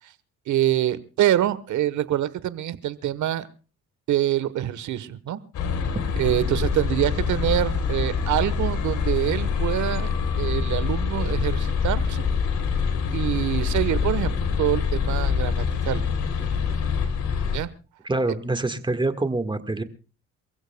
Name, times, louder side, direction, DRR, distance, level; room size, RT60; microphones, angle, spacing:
voice 1, 0.5-3.5 4.1-5.4 6.2-10.1 10.4-12.2 13.1-16.0 17.5-17.7, right 12 dB, 75° right, 15 dB, 1.2 m, -25 dB
sound 1, 5.5-17.6, left 6 dB, 75° left, 3.2 m, -25 dB
voice 2, 18.0-19.8, right 2 dB, 15° right, 10 dB, 1.6 m, -25 dB
28.0 x 15.5 x 2.2 m, 0.35 s
cardioid pair, 90°, 30 cm